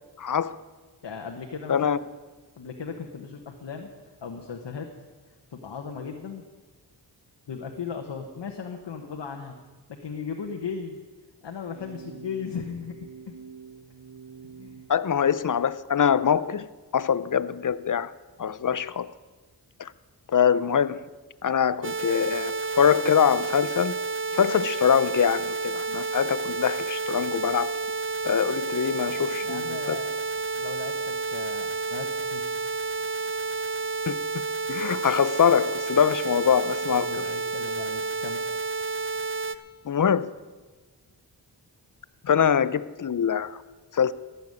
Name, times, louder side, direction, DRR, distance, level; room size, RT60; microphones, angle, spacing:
voice 1, 0.2-0.6 1.7-2.0 14.9-16.7 16.9-18.1 18.4-19.1 19.8-19.9 20.3-21.0 21.4-24.0 24.3-27.7 28.2-30.0 34.1-34.2 34.7-37.1 39.9-40.3 42.3-43.6 43.9-44.1, left 8 dB, 50° left, 0.6 m, -23 dB
voice 2, 1.0-2.0 2.6-3.9 4.2-4.9 5.5-6.4 7.5-9.6 9.9-11.0 11.4-13.3 14.6-14.8 29.1-30.1 30.5-32.4 36.9-38.4, left 6 dB, 75° left, 1.2 m, -37 dB
sound 1, 11.7-14.9, right 6 dB, 60° right, 1.2 m, -46 dB
sound 2, 21.8-39.6, right 4 dB, 30° right, 0.7 m, -30 dB
14.5 x 7.1 x 9.6 m
cardioid pair, 50°, 42 cm